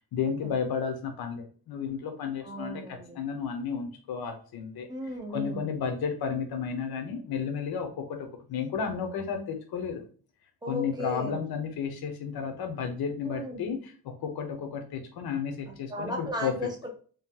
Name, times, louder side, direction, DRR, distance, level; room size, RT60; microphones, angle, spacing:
voice 1, 0.1-4.9 5.3-10.0 10.7-16.7, left 6 dB, 75° left, 5 dB, 0.9 m, -33 dB
voice 2, 2.4-3.1 4.9-5.7 10.6-11.4 13.2-13.7 15.9-16.9, equal, 10° right, 2 dB, 0.9 m, -36 dB
3.3 x 3.0 x 3.7 m, 0.42 s
wide cardioid pair, 170°, 37 cm